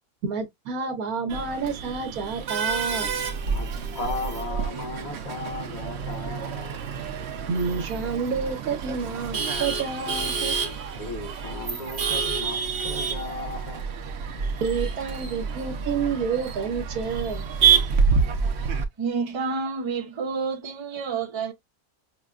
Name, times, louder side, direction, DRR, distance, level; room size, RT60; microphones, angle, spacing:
voice 1, 0.2-3.1 7.5-10.6 14.6-17.4, right 5 dB, 75° right, 1.3 m, -29 dB
Male speech man speaking / Laughter / Chatter, 1.3-18.8, right 6 dB, 55° right, 0.8 m, -28 dB
voice 2, 3.5-6.8 10.9-13.9, left 3 dB, 30° left, 1.1 m, -36 dB
voice 3, 19.0-21.5, right 5 dB, 30° right, 0.5 m, -29 dB
5.6 x 2.2 x 2.3 m
omnidirectional pair, 1.5 m